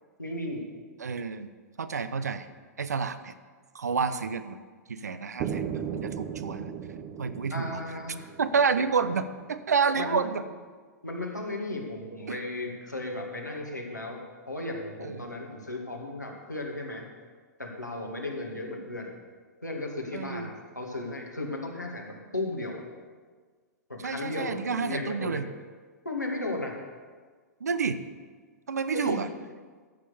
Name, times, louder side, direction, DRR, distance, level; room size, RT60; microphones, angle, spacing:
voice 1, 0.2-0.7 7.5-8.3 10.0-10.3 11.0-17.1 17.6-19.1 19.6-22.8 23.9-25.4 26.0-26.8 28.9-29.2, left 2 dB, 85° left, -1 dB, 2.2 m, -35 dB
voice 2, 1.0-1.5 1.8-2.5 2.8-3.3 3.7-4.6 4.9-6.7 7.2-7.8 8.4-10.4 12.3-12.4 15.0-15.4 20.1-20.5 24.0-25.4 27.6-28.0 28.7-29.3, right 5 dB, 70° right, 12 dB, 0.7 m, -29 dB
sound 1, 5.4-9.3, right 8 dB, 30° right, 1.1 m, -36 dB
14.5 x 6.4 x 6.8 m, 1.5 s
figure-of-eight pair, 105°, 9 cm